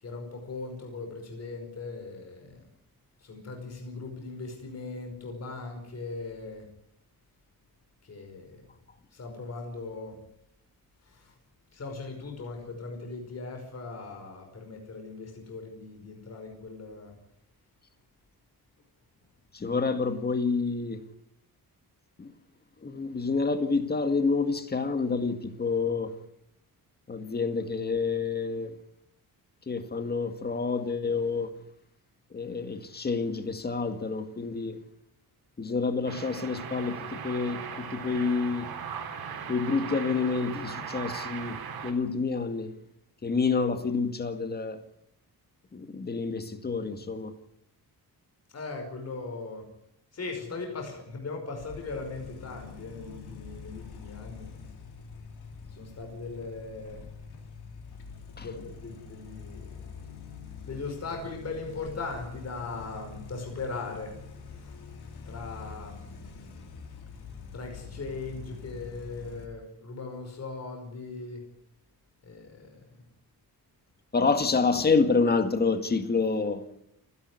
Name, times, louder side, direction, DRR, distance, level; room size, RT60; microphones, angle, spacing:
voice 1, 0.0-2.7 3.2-6.7 8.0-8.6 9.1-10.2 11.0-11.3 11.7-17.1 48.5-49.7 50.1-54.5 55.7-57.0 58.4-59.8 60.6-64.2 64.6-64.8 65.3-66.0 67.5-71.4 72.2-72.8, left 3 dB, 40° left, 5.4 m, -39 dB
voice 2, 19.5-21.0 22.2-22.3 22.8-26.1 27.1-28.8 29.7-31.5 32.3-34.8 35.6-38.7 39.5-41.6 41.8-42.7 43.2-44.8 45.7-47.3 58.4-58.5 74.1-76.7, left 4 dB, 25° left, 2.0 m, -28 dB
sound 1, 36.1-41.9, right 7 dB, 75° right, 4.0 m, -38 dB
sound 2, 51.6-69.5, left 5 dB, 90° left, 3.7 m, -45 dB
29.5 x 11.0 x 9.8 m
wide cardioid pair, 170°, 38 cm